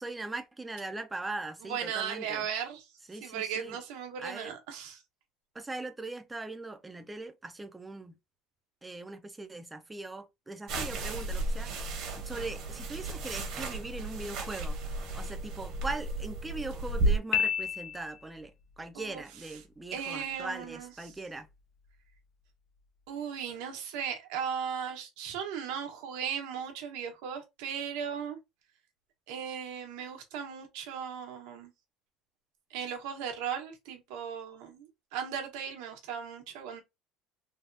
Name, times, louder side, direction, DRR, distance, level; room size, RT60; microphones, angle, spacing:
voice 1, 0.0-2.5 3.1-3.8 4.2-4.5 5.5-8.1 8.8-11.9 12.2-14.8 15.1-21.5, right 2 dB, 10° right, 0.4 m, -40 dB
voice 2, 1.6-2.8 3.2-5.0 18.9-19.2 19.9-20.9 23.1-28.4 29.3-31.7 32.7-36.8, right 8 dB, 80° right, 1.0 m, -37 dB
sound 1, 10.7-17.2, right 2 dB, 50° right, 1.1 m, -33 dB
Piano, 17.3-18.4, left 9 dB, 55° left, 0.5 m, -30 dB
3.3 x 2.3 x 2.6 m
cardioid pair, 160°, 0 cm